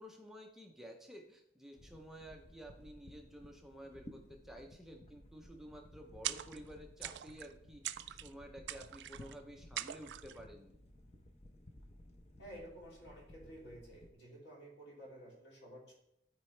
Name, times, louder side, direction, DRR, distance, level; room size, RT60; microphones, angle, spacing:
voice 1, 0.0-10.8, equal, ahead, 2 dB, 0.6 m, -52 dB
sound 1, 1.8-14.1, left 1 dB, 35° left, 0.7 m, -57 dB
sound 2, 4.2-10.4, right 1 dB, 90° left, 1.6 m, -71 dB
sound 3, 6.2-6.7 7.0-7.5 7.8-8.3 8.7-9.3 9.8-10.4, right 12 dB, 75° right, 0.4 m, -42 dB
voice 2, 12.4-15.9, equal, 70° left, -3 dB, 2.9 m, -52 dB
12.5 x 4.7 x 3.2 m, 0.79 s
head